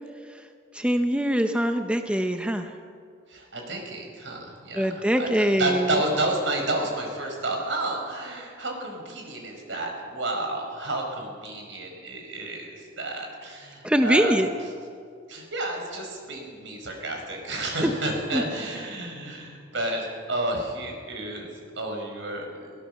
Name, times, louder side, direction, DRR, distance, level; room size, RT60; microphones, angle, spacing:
voice 1, 0.7-2.7 4.7-5.8 13.8-14.5 18.3-18.4, equal, 5° right, 6 dB, 0.8 m, -23 dB
voice 2, 3.3-14.7 15.3-21.5 21.7-22.7, right 2 dB, 75° right, 2 dB, 5.0 m, -31 dB
23.0 x 17.0 x 6.7 m, 2.2 s
head